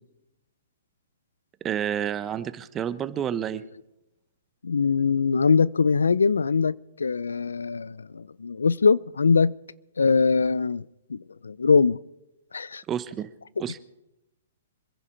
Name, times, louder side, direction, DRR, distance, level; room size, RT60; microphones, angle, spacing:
voice 1, 1.6-3.6 12.9-13.3 13.6-13.8, right 9 dB, 20° right, 0.9 m, -29 dB
voice 2, 4.6-9.5 10.0-10.8 11.1-12.0 12.5-12.8, left 5 dB, 90° left, 0.5 m, -22 dB
26.5 x 10.5 x 4.4 m
hypercardioid pair, 135°, 0 cm